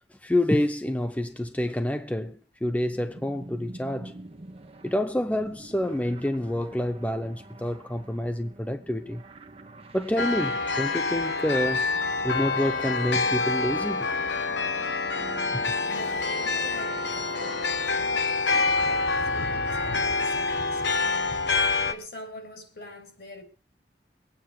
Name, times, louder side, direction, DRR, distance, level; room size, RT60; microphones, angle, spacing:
voice 1, 0.1-4.1 4.8-9.2 9.9-11.9 12.2-14.1, left 1 dB, 10° left, 0.6 m, -28 dB
sound 1, 2.7-17.7, right 2 dB, 35° right, 1.1 m, -47 dB
sound 2, 10.2-21.9, left 4 dB, 85° left, 1.3 m, -27 dB
voice 2, 15.9-23.4, equal, 65° left, 3.4 m, -44 dB
22.0 x 9.0 x 4.7 m
head